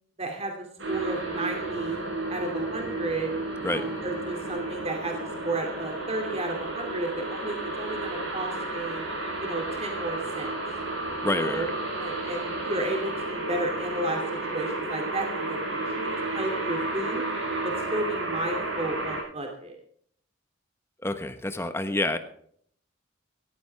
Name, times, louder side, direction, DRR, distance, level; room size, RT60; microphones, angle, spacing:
voice 1, 0.2-2.0 2.3-3.3 3.7-5.1 5.4-9.0 9.4-10.5 11.2-11.7 12.0-17.2 17.6-19.8, right 2 dB, 30° right, 2 dB, 2.6 m, -33 dB
sound 1, 0.8-19.2, right 2 dB, 65° right, 7.9 m, -32 dB
voice 2, 11.2-11.7 21.0-22.2, left 2 dB, 15° left, 9 dB, 1.2 m, -28 dB
17.5 x 15.0 x 3.5 m, 0.62 s
head